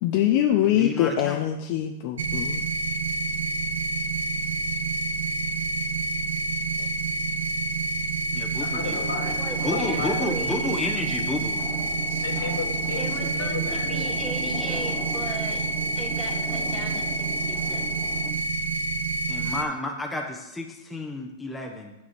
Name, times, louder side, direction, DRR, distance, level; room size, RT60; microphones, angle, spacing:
voice 1, 0.0-2.6 6.8-6.9, left 11 dB, 50° left, 4 dB, 0.7 m, -23 dB
voice 2, 0.6-1.4 8.3-9.0 9.6-11.6 19.3-21.9, left 1 dB, 5° left, 1 dB, 1.2 m, -31 dB
sound 1, 2.2-19.6, right 2 dB, 85° right, 0.9 m, -28 dB
voice 3, 8.5-10.4 12.1-14.1, left 4 dB, 85° left, 2 dB, 2.6 m, -34 dB
sound 2, 8.8-18.3, left 2 dB, 25° left, 1.5 m, -39 dB
voice 4, 9.3-10.7 13.0-15.6 15.9-17.8, right 2 dB, 10° right, -2 dB, 2.5 m, -37 dB
9.5 x 4.9 x 7.5 m, 0.94 s
hypercardioid pair, 130°, 0 cm